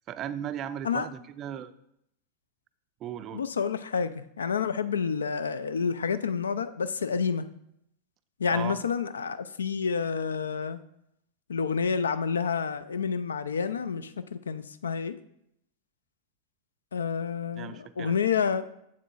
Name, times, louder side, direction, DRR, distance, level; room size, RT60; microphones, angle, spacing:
voice 1, 0.1-1.7 3.0-3.4 8.5-8.8 17.5-18.2, right 10 dB, 30° right, 13 dB, 0.3 m, -37 dB
voice 2, 3.3-7.5 8.4-10.8 11.5-15.1 16.9-18.7, left 6 dB, 70° left, 14 dB, 0.3 m, -29 dB
7.5 x 7.2 x 2.4 m, 0.77 s
figure-of-eight pair, 90°, 0 cm